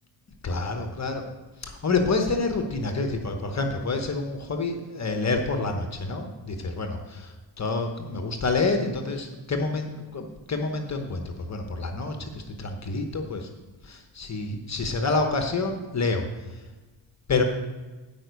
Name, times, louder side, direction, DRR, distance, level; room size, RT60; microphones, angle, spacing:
voice 1, 0.4-1.3 1.6-13.5 13.8-16.3 16.6-16.7 17.3-17.4, left 3 dB, 35° left, 5 dB, 1.2 m, -28 dB
9.5 x 5.2 x 8.1 m, 1.2 s
cardioid pair, 120°, 48 cm